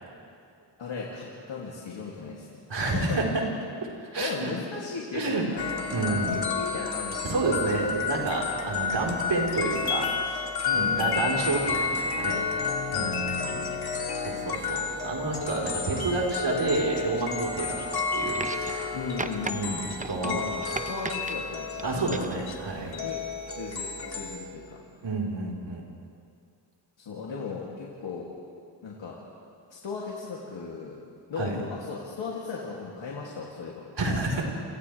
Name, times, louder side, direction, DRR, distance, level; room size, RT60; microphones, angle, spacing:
voice 1, 0.8-3.2 4.2-7.6 10.6-11.2 12.9-13.2 18.9-19.9 20.2-21.8 23.0-23.2 23.6-24.8 27.0-28.3 28.8-29.2 29.7-31.0 31.3-33.8, left 4 dB, 75° left, -4 dB, 3.0 m, -36 dB
voice 2, 2.7-3.2 4.1-4.5 5.1-5.4 5.9-6.3 7.2-10.4 10.7-12.4 12.9-13.5 14.2-19.0 19.5-20.4 21.8-23.0 25.0-25.9 31.4-31.5 34.0-34.4, right 3 dB, 65° right, -2 dB, 4.6 m, -29 dB
sound 1, 5.6-24.4, left 5 dB, 55° left, 2.4 m, -31 dB
sound 2, 18.3-18.9 19.2-19.5 20.0-21.4 21.8-22.4 23.5-23.6, right 3 dB, 15° right, 0.9 m, -36 dB
29.0 x 26.0 x 3.5 m, 2.4 s
cardioid pair, 60°, 45 cm